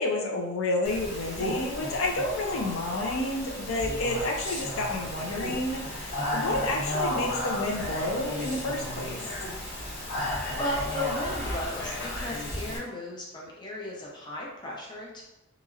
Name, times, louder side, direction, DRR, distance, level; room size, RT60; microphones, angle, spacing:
voice 1, 0.0-9.2, left 2 dB, 80° left, 1 dB, 0.5 m, -30 dB
Speech, 0.8-12.8, left 1 dB, 55° left, 1.1 m, -33 dB
voice 2, 10.2-15.2, left 1 dB, 20° left, -3 dB, 0.6 m, -35 dB
2.9 x 2.6 x 2.4 m, 0.92 s
head